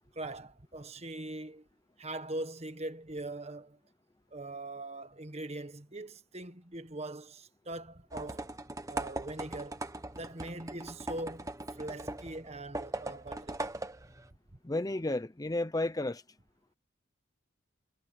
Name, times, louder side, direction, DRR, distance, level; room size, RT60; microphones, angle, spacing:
voice 1, 0.1-1.7 2.0-3.8 4.3-8.6 8.9-9.8 10.1-13.6, right 2 dB, 30° right, 1.4 m, -42 dB
sound 1, 8.1-14.3, right 2 dB, 15° right, 1.2 m, -40 dB
voice 2, 14.6-16.2, left 2 dB, 20° left, 0.6 m, -32 dB
head